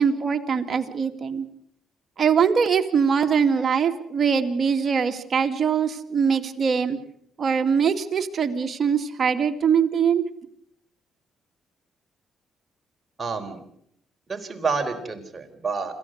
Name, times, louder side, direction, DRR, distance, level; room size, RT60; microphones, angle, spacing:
voice 1, 0.0-1.5 2.2-7.0 7.4-10.2, right 6 dB, 45° right, 6 dB, 2.3 m, -22 dB
voice 2, 13.2-13.6 14.3-16.0, right 4 dB, 30° right, 5 dB, 4.1 m, -29 dB
27.0 x 15.0 x 8.1 m, 0.72 s
cardioid pair, 90°, 0 cm